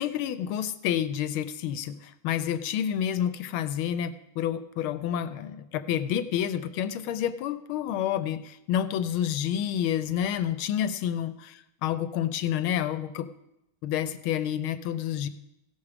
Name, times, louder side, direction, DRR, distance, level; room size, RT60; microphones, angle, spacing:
voice 1, 0.0-11.5 11.8-13.3 13.8-15.3, left 10 dB, 90° left, 12 dB, 1.5 m, -29 dB
16.5 x 6.0 x 5.0 m, 0.87 s
omnidirectional pair, 2.3 m